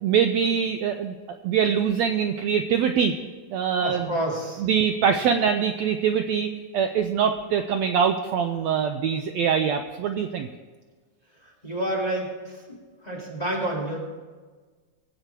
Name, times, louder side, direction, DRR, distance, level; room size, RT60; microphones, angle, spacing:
voice 1, 0.0-1.1 1.4-3.2 3.5-4.1 4.6-10.5, right 7 dB, 80° right, 7 dB, 1.6 m, -23 dB
voice 2, 3.8-4.6 11.6-12.8 13.0-14.0, right 1 dB, 15° left, -3 dB, 1.9 m, -29 dB
21.5 x 8.2 x 4.5 m, 1.4 s
omnidirectional pair, 3.7 m